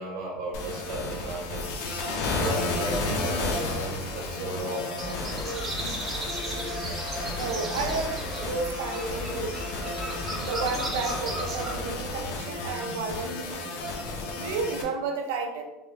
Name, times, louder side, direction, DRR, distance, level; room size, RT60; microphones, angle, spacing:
voice 1, 0.0-1.7 2.4-5.4, right 1 dB, 70° right, -2 dB, 1.3 m, -34 dB
sound 1, 0.5-14.8, left 2 dB, 75° left, 0.6 m, -33 dB
sound 2, 5.0-11.9, equal, 20° right, 0.7 m, -35 dB
voice 2, 7.3-9.7 10.4-13.8 14.4-15.6, right 4 dB, 85° right, 4 dB, 0.5 m, -32 dB
3.1 x 2.5 x 3.2 m, 0.99 s
supercardioid pair, 135°, 0 cm